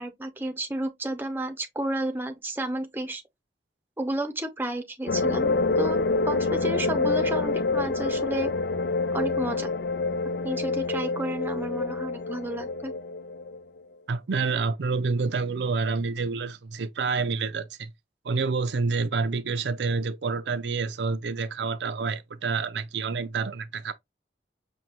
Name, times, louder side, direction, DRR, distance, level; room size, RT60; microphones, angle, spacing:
voice 1, 0.0-3.2 4.0-8.5 9.1-9.7 10.4-12.9, right 1 dB, 10° right, 0.6 m, -32 dB
sound 1, 5.1-13.6, left 3 dB, 75° left, 0.5 m, -27 dB
voice 2, 14.1-17.9 18.2-23.9, right 4 dB, 80° right, 0.5 m, -28 dB
5.3 x 2.2 x 2.9 m
head